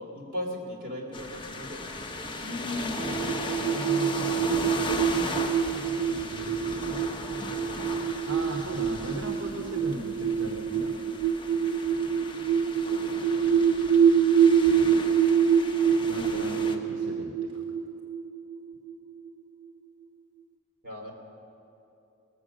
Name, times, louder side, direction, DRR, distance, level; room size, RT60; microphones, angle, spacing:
voice 1, 0.0-1.9 12.8-14.0 20.8-21.1, left 1 dB, 40° right, -1 dB, 2.6 m, -38 dB
sound 1, 1.1-16.8, left 2 dB, 20° left, 0.9 m, -37 dB
voice 2, 2.4-4.9 5.7-7.2 8.2-11.0 16.0-17.6, right 1 dB, 60° right, 1 dB, 0.9 m, -38 dB
sound 2, 3.0-19.3, right 7 dB, 85° right, 0.6 m, -26 dB
19.5 x 7.6 x 6.3 m, 2.9 s
head